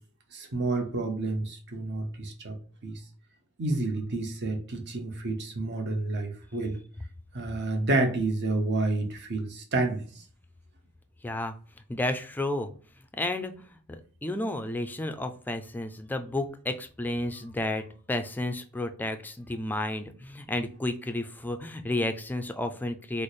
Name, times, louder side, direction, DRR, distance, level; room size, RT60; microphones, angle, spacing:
voice 1, 0.3-2.6 2.8-3.0 3.6-6.8 7.3-10.2, right 2 dB, 55° right, 4 dB, 0.8 m, -29 dB
voice 2, 11.2-11.5 11.9-12.7 13.2-13.5 13.9-23.2, left 1 dB, 10° left, 7 dB, 0.3 m, -32 dB
3.2 x 2.0 x 4.1 m, 0.42 s
head